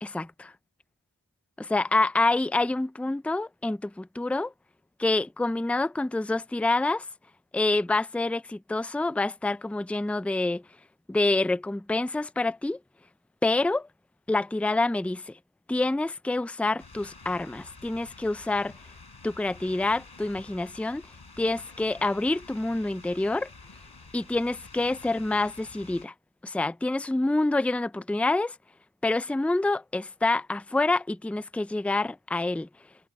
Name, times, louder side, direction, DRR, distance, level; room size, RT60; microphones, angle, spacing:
voice 1, 0.0-0.5 1.6-4.5 5.0-7.0 7.5-10.6 11.1-12.8 13.4-13.8 14.3-15.3 15.7-18.7 19.2-21.0 21.4-23.5 24.1-26.1 26.4-28.5 29.0-32.7, left 2 dB, 5° left, 0.5 m, -27 dB
sound 1, 16.8-26.1, left 3 dB, 90° left, 5.0 m, -49 dB
wide cardioid pair, 45°, 38 cm